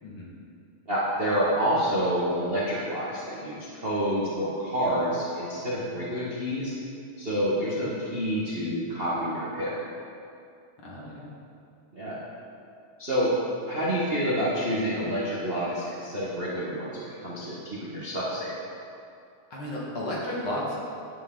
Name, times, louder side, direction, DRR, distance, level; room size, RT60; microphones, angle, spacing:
voice 1, 0.0-0.3 10.8-11.3 19.5-20.8, left 1 dB, 50° left, -5 dB, 2.2 m, -33 dB
voice 2, 0.9-6.8 7.2-9.7 11.9-12.2 13.0-13.4 13.6-18.5, equal, 40° right, -8 dB, 0.8 m, -28 dB
11.5 x 8.2 x 3.8 m, 2.5 s
omnidirectional pair, 3.3 m